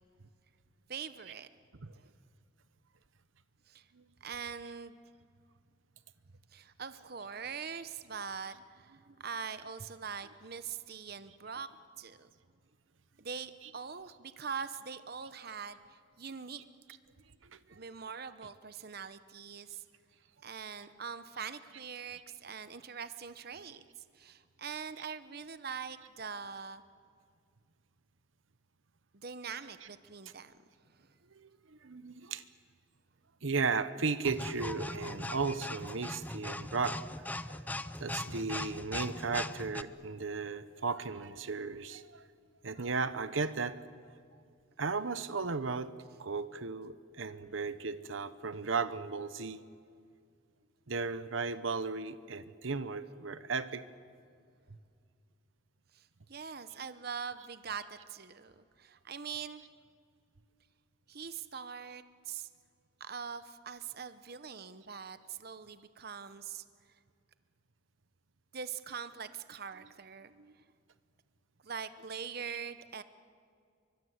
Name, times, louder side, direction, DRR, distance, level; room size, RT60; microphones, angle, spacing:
voice 1, 0.9-1.5 3.7-3.9 4.2-5.0 6.5-11.7 12.0-12.3 13.2-16.6 17.7-19.8 20.4-23.9 24.1-26.8 29.1-30.5 55.9-59.6 61.1-62.5 63.0-66.6 68.5-70.3 71.6-73.0, right 6 dB, 50° right, 12 dB, 0.9 m, -43 dB
voice 2, 17.4-17.8 31.3-32.4 33.4-37.0 37.5-42.3 42.6-43.8 44.8-45.9 46.2-49.6 50.9-53.9 70.4-70.5, right 4 dB, 75° right, 13 dB, 1.0 m, -35 dB
sound 1, 34.2-39.8, left 1 dB, 10° left, 0.6 m, -40 dB
28.5 x 24.0 x 8.1 m, 2.3 s
head